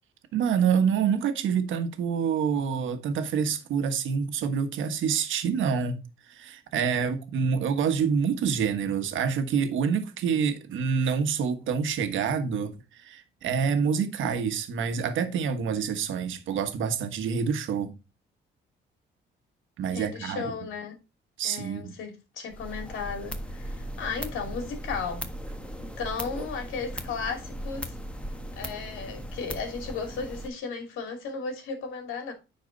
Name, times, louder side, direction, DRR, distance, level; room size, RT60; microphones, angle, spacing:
voice 1, 0.3-6.0 6.3-17.9 19.8-20.4 21.4-21.9, right 6 dB, 80° right, 1.4 m, -27 dB
voice 2, 19.9-21.0 21.4-25.3 25.8-27.9 28.6-32.3, left 5 dB, 85° left, 2.7 m, -35 dB
sound 1, 22.5-30.5, equal, 5° left, 1.4 m, -38 dB
9.8 x 4.7 x 3.9 m
cardioid pair, 90°, 20 cm